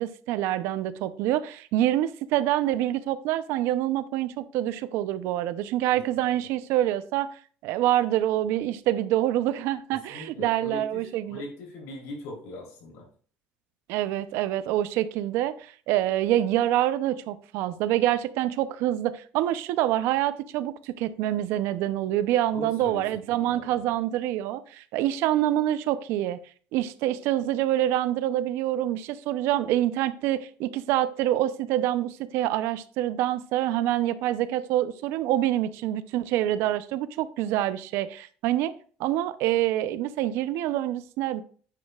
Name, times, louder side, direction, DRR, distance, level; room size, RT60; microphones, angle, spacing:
voice 1, 0.0-7.3 7.6-11.4 13.9-26.4 26.7-38.7 39.0-41.4, right 13 dB, 75° right, 0.6 m, -26 dB
voice 2, 10.1-13.1 22.5-23.9, left 2 dB, 85° left, 3.5 m, -40 dB
9.8 x 7.3 x 2.4 m
cardioid pair, 140°, 4 cm